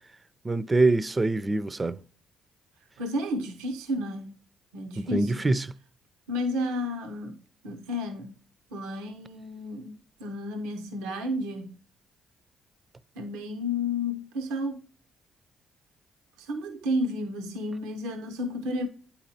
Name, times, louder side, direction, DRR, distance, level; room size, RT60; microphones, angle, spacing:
voice 1, 0.4-2.0 5.0-5.7, right 2 dB, 30° right, 0.4 m, -24 dB
voice 2, 3.0-4.3 4.7-5.4 6.3-8.3 8.7-9.9 10.2-11.7 13.2-14.8 16.4-18.9, left 1 dB, 85° right, 0.6 m, -32 dB
8.6 x 4.2 x 2.7 m
hypercardioid pair, 50°, 0 cm